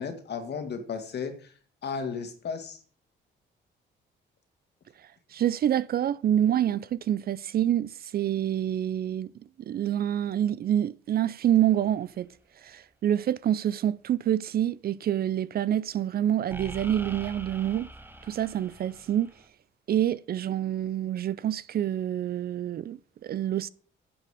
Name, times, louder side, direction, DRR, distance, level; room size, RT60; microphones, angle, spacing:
voice 1, 0.0-1.5 1.8-2.8, left 6 dB, 55° left, 2.0 m, -34 dB
voice 2, 5.3-9.3 9.6-12.3 12.6-17.9 18.2-19.3 19.9-23.7, right 11 dB, 50° right, 0.4 m, -27 dB
sound 1, 11.7-11.9 16.5-19.5, right 1 dB, 10° right, 1.0 m, -43 dB
10.0 x 6.7 x 4.9 m
cardioid pair, 90°, 20 cm